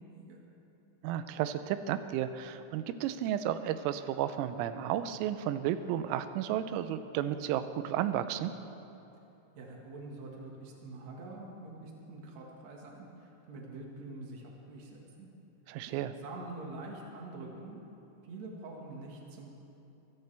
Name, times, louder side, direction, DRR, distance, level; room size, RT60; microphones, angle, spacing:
voice 1, 0.1-0.4 9.5-15.3 15.8-17.8 18.2-19.5, right 2 dB, 70° right, -1 dB, 1.6 m, -45 dB
voice 2, 1.0-8.5 15.7-16.1, right 11 dB, 85° right, 11 dB, 3.3 m, -33 dB
23.0 x 14.5 x 3.4 m, 2.9 s
omnidirectional pair, 5.9 m